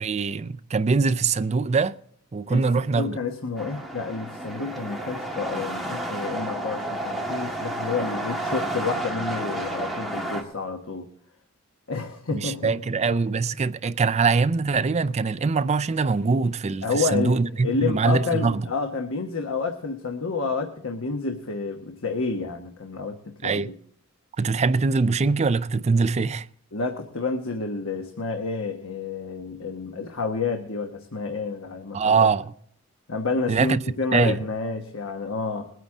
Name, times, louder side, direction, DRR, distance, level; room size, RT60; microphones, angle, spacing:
voice 1, 0.0-2.0 2.3-3.2 12.3-18.6 23.4-23.7 24.4-26.5 31.9-32.5 33.5-33.8 34.1-34.4, right 4 dB, 30° right, 0.4 m, -23 dB
voice 2, 3.0-11.1 11.9-12.7 16.8-23.2 23.4-23.7 26.7-32.1 33.1-35.7, left 4 dB, 70° left, 1.1 m, -29 dB
sound 1, 3.6-10.4, right 1 dB, ahead, 1.7 m, -31 dB
21.0 x 9.4 x 3.7 m
head